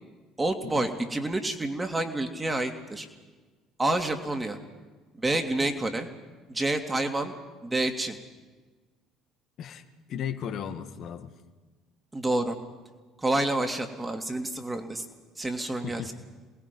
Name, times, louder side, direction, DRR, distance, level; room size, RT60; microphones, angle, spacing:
voice 1, 0.4-3.1 3.8-4.6 5.2-6.1 6.5-7.4 7.6-8.2 12.1-12.6 13.2-15.0 15.4-16.1, right 2 dB, 20° right, 5 dB, 3.0 m, -28 dB
voice 2, 10.1-11.3 15.8-16.1, left 8 dB, 55° left, 7 dB, 1.8 m, -35 dB
28.0 x 20.0 x 5.5 m, 1.3 s
hypercardioid pair, 60°, 0 cm